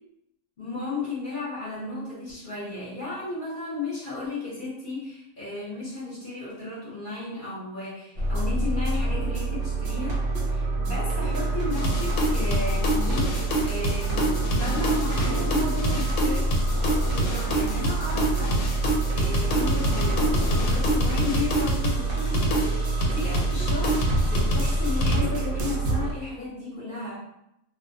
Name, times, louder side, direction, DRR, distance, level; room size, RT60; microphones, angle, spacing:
voice 1, 0.6-16.5 17.1-18.6 19.1-27.2, left 3 dB, 45° left, -8 dB, 0.7 m, -34 dB
sound 1, 8.2-26.1, right 2 dB, 60° right, 0.7 m, -26 dB
sound 2, 11.2-13.4 13.9-16.0 16.3-20.8, equal, 30° right, 0.3 m, -39 dB
sound 3, 11.7-25.2, equal, 90° left, 1.0 m, -27 dB
2.3 x 2.1 x 2.6 m, 0.83 s
omnidirectional pair, 1.4 m